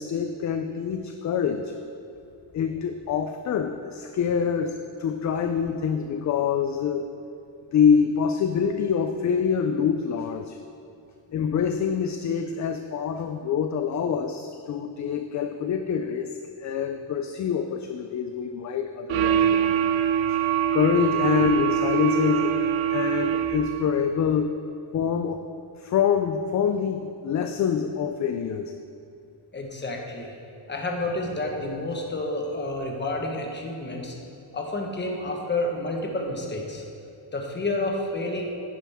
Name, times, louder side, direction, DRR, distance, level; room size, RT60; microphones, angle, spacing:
voice 1, 0.0-1.7 2.5-7.1 7.7-10.6 11.3-19.9 20.3-20.4 20.7-22.6 22.9-24.6 24.9-25.5 25.8-28.7, left 7 dB, 40° left, 6 dB, 0.4 m, -25 dB
sound 1, 19.1-23.9, right 9 dB, 75° right, 0.6 m, -24 dB
voice 2, 29.5-30.3 30.7-34.1 34.5-36.8 37.3-38.4, left 2 dB, 20° left, 1 dB, 1.3 m, -29 dB
10.0 x 9.9 x 3.6 m, 2.6 s
cardioid pair, 145°, 47 cm